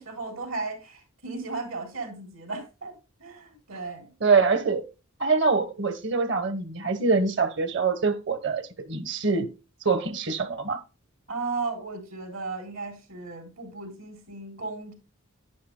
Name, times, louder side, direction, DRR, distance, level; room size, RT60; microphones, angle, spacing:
voice 1, 0.0-2.9 3.2-4.1 11.3-14.9, right 3 dB, 80° right, 3.8 m, -35 dB
voice 2, 4.2-4.9 5.2-9.5 9.8-10.8, right 4 dB, 55° right, 1.2 m, -24 dB
11.5 x 10.0 x 2.2 m
head